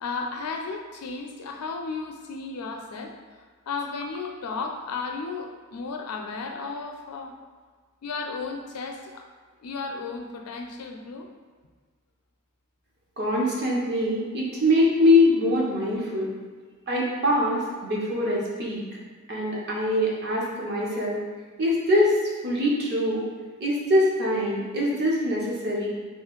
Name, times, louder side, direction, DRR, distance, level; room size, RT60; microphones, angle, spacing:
voice 1, 0.0-3.1 3.7-7.4 8.0-9.3 9.6-11.3, left 4 dB, 90° left, 3 dB, 0.5 m, -34 dB
voice 2, 13.2-16.3 16.9-18.8 19.3-21.2 21.6-22.1 22.4-23.3 23.6-26.0, left 1 dB, 50° right, -4 dB, 0.8 m, -23 dB
3.1 x 2.5 x 3.8 m, 1.5 s
head